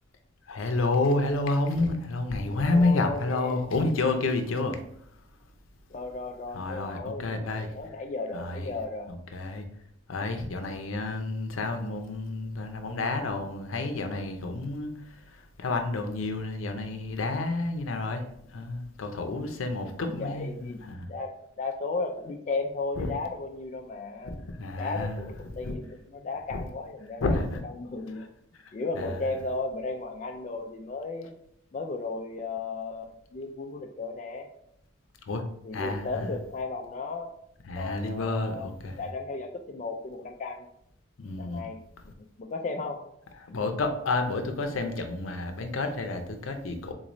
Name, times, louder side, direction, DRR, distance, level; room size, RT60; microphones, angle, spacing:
voice 1, 0.5-4.8 6.5-7.7 8.3-8.7 9.3-9.6 10.1-18.2 18.5-21.1 23.0-23.1 24.2-25.2 25.6-25.8 26.5-26.6 27.2-27.6 28.6-29.2 35.3-35.4 35.7-36.3 37.6-39.0 41.2-41.7 43.4-46.9, left 2 dB, 90° left, 6 dB, 0.6 m, -30 dB
voice 2, 2.5-3.5 5.9-7.2 7.5-9.1 20.0-24.4 24.8-27.3 27.6-28.3 28.7-31.3 31.7-34.5 35.6-37.4 37.8-38.7 39.0-40.7 41.4-41.8 42.4-43.0, left 3 dB, 35° left, 3 dB, 0.3 m, -35 dB
3.9 x 3.0 x 2.6 m, 0.71 s
head